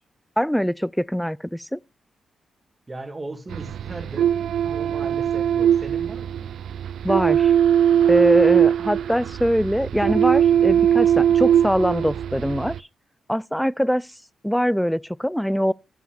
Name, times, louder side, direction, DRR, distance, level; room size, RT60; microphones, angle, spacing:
voice 1, 0.4-1.8 7.0-7.5 8.1-12.9 13.3-14.1 14.4-15.7, equal, ahead, 0.3 m, -23 dB
voice 2, 2.9-6.5, right 2 dB, 30° right, 2.1 m, -37 dB
sound 1, 3.5-12.8, right 9 dB, 80° right, 0.3 m, -20 dB
11.0 x 7.3 x 2.5 m
supercardioid pair, 45°, 0 cm